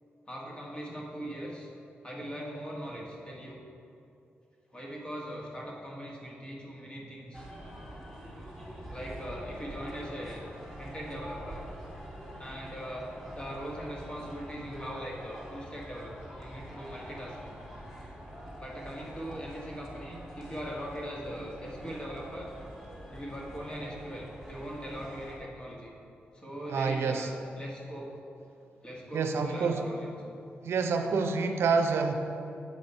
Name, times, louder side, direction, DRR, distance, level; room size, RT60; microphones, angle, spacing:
voice 1, 0.3-1.7 2.0-3.6 4.7-7.4 8.9-10.4 10.7-11.6 12.4-17.5 18.6-22.5 23.1-25.9 26.3-27.3 27.6-28.1 28.8-30.1, equal, 25° left, -3 dB, 1.5 m, -40 dB
sound 1, 7.3-25.4, equal, 10° left, 1.5 m, -45 dB
voice 2, 26.7-27.3 29.1-29.9 30.6-32.1, right 5 dB, 80° right, 6 dB, 0.5 m, -27 dB
8.2 x 4.2 x 4.3 m, 2.6 s
cardioid pair, 80°, 4 cm